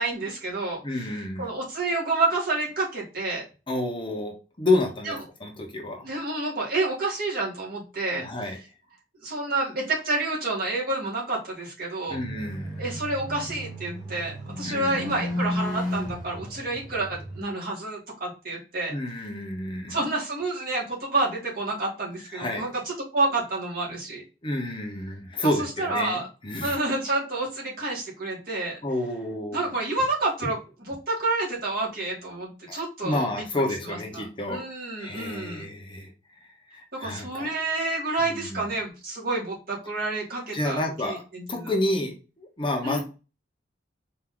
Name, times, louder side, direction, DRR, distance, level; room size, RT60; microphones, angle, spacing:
voice 1, 0.0-1.1 1.4-3.4 5.1-5.2 6.0-8.3 9.2-12.2 12.8-18.9 19.9-24.2 25.4-25.5 25.8-26.3 26.6-28.8 29.5-33.4 33.9-34.2 34.5-35.7 36.9-41.7 42.8-43.0, right 2 dB, 55° right, -4 dB, 2.2 m, -29 dB
voice 2, 0.8-1.5 3.7-6.1 8.1-8.6 12.1-12.8 14.6-15.1 18.9-20.0 22.3-22.7 24.4-26.8 28.8-29.6 32.7-34.6 35.0-36.1 36.7-37.5 38.3-38.6 40.5-41.2 41.5-43.0, left 1 dB, 30° left, 1 dB, 1.0 m, -29 dB
sound 1, 12.1-17.4, left 1 dB, 20° right, 1.8 m, -33 dB
4.5 x 2.8 x 3.9 m, 0.31 s
head